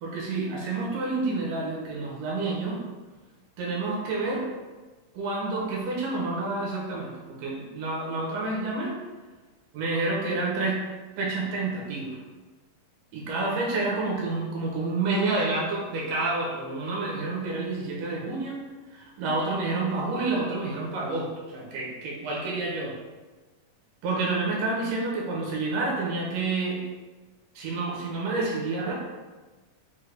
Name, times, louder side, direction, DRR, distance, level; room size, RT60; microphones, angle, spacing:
voice 1, 0.0-2.8 3.6-4.5 5.1-7.1 7.4-8.9 9.7-10.8 11.2-12.2 13.1-18.6 18.9-22.9 24.0-26.8 27.6-28.9, right 3 dB, 75° right, -3 dB, 2.4 m, -29 dB
6.2 x 2.2 x 3.2 m, 1.3 s
omnidirectional pair, 3.8 m